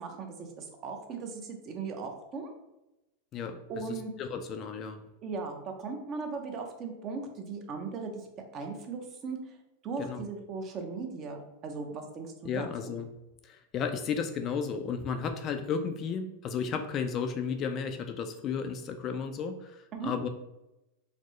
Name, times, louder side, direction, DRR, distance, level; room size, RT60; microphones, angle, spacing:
voice 1, 0.0-2.5 3.7-4.1 5.2-9.6 9.8-12.9 19.9-20.1, right 4 dB, 35° right, 4 dB, 0.6 m, -38 dB
voice 2, 3.9-5.0 10.0-10.2 12.4-13.1 13.4-20.3, left 6 dB, 35° left, 7 dB, 0.3 m, -33 dB
4.2 x 2.0 x 3.0 m, 0.93 s
supercardioid pair, 130°, 0 cm